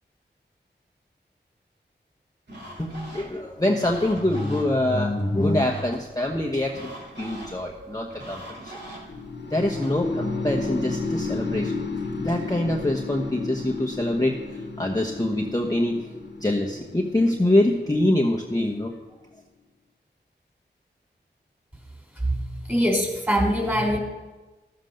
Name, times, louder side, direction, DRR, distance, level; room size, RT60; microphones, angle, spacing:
sound 1, 2.5-9.9, equal, 65° right, 3.2 m, -43 dB
voice 1, 2.8-6.8 7.2-8.4 9.5-11.7 12.2-14.3 14.8-16.0 16.4-18.9, left 1 dB, 20° left, 0 dB, 1.1 m, -24 dB
sound 2, 9.1-19.1, left 3 dB, 70° left, 1.4 m, -32 dB
voice 2, 22.2-24.0, equal, 10° right, -1 dB, 3.6 m, -23 dB
13.5 x 7.4 x 6.6 m, 1.2 s
cardioid pair, 50°, 19 cm